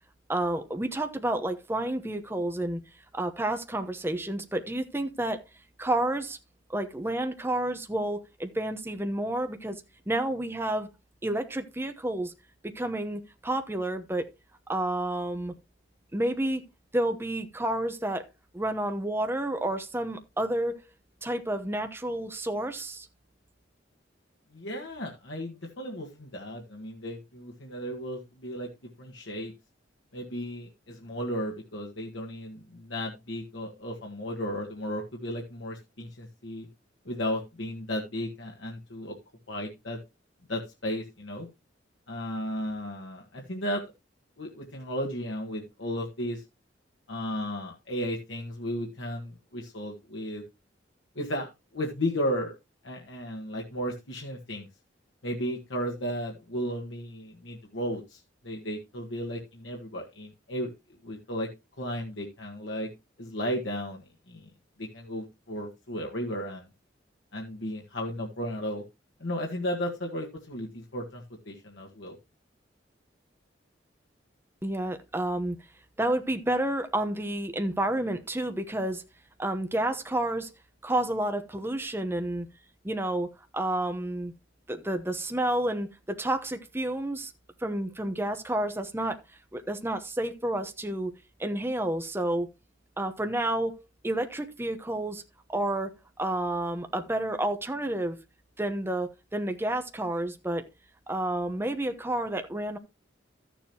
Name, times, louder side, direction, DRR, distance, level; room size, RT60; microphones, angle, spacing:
voice 1, 0.3-2.8 3.1-5.4 5.8-6.4 6.7-9.8 10.1-10.9 11.2-12.3 12.6-14.3 14.7-15.5 16.1-16.6 16.9-18.2 18.5-20.8 21.2-23.1 74.6-75.6 76.0-79.0 79.4-80.5 80.8-82.5 82.8-83.3 83.5-84.3 84.7-87.3 87.6-89.2 89.5-91.1 91.4-92.5 93.0-93.8 94.0-95.2 95.5-95.9 96.2-98.2 98.6-100.7 101.1-102.8, right 1 dB, 15° right, 0.9 m, -30 dB
voice 2, 24.5-28.7 29.0-29.5 30.1-36.7 37.0-39.2 39.5-40.0 40.5-41.5 42.1-43.8 44.4-46.4 47.1-50.4 51.1-52.5 52.8-54.7 55.2-60.7 61.0-61.5 61.8-62.9 63.2-64.5 64.8-66.7 67.3-68.8 69.2-72.2, equal, 85° left, 1.6 m, -34 dB
13.5 x 7.0 x 2.9 m
head